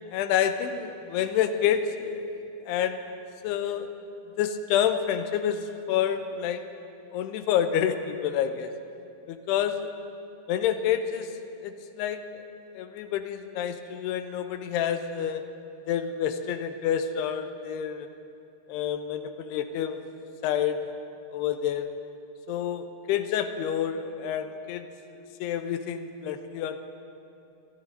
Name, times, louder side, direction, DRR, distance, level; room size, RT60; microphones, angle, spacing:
voice 1, 0.1-3.0 3.4-3.9 4.4-6.6 7.1-8.7 9.3-9.9 10.5-11.3 11.6-12.5 12.7-15.4 15.9-18.1 18.7-20.0 20.4-20.8 21.3-21.9 22.5-24.9 25.4-26.8, left 9 dB, 85° left, 8 dB, 2.7 m, -28 dB
25.0 x 16.0 x 2.7 m, 2.7 s
omnidirectional pair, 4.7 m